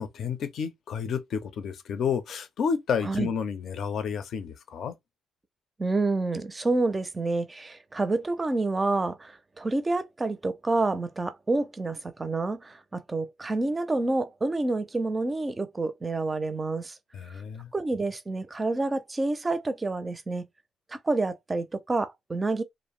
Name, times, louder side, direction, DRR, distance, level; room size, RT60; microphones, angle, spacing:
voice 1, 0.0-4.9 17.1-17.7, left 6 dB, 65° left, 0.5 m, -30 dB
voice 2, 5.8-17.0 17.2-17.4 17.7-20.4 20.9-22.6, right 2 dB, 25° right, 0.5 m, -28 dB
2.6 x 2.0 x 3.1 m
cardioid pair, 90°, 0 cm